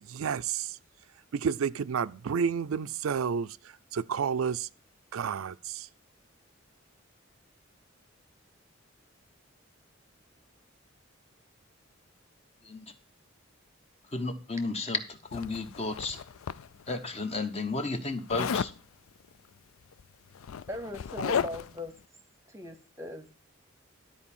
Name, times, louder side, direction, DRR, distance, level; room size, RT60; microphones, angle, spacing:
voice 1, 0.1-0.8 1.3-3.6 3.9-4.7 5.1-5.9, right 6 dB, 90° right, 0.4 m, -30 dB
voice 2, 14.1-16.2 16.9-18.7, left 3 dB, 30° left, 1.0 m, -33 dB
Zipper (clothing), 15.3-17.0 18.3-18.8 19.9-20.0 20.3-21.8, left 7 dB, 90° left, 0.4 m, -33 dB
voice 3, 20.7-21.9 22.5-23.3, left 1 dB, 15° right, 0.9 m, -39 dB
12.0 x 4.5 x 7.2 m
head